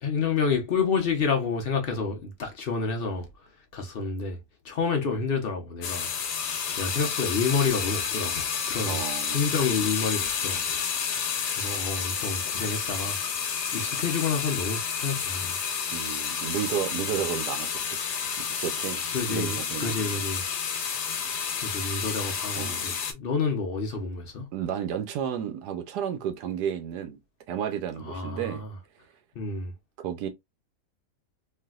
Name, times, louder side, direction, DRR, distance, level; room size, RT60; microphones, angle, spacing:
voice 1, 0.0-3.3 3.7-4.4 4.6-6.1 6.8-9.0 9.3-11.0 11.5-13.5 13.7-15.6 19.1-20.4 21.6-24.5 28.0-28.7 29.4-29.7, left 5 dB, 55° left, 0.6 m, -29 dB
sound 1, 5.8-23.1, left 7 dB, 80° left, 1.3 m, -30 dB
voice 2, 8.9-9.4 15.9-18.0 18.5-20.1 22.6-23.0 24.5-27.2 27.5-28.6 30.0-30.3, right 9 dB, 80° right, 1.2 m, -32 dB
3.3 x 2.7 x 2.3 m
omnidirectional pair, 1.7 m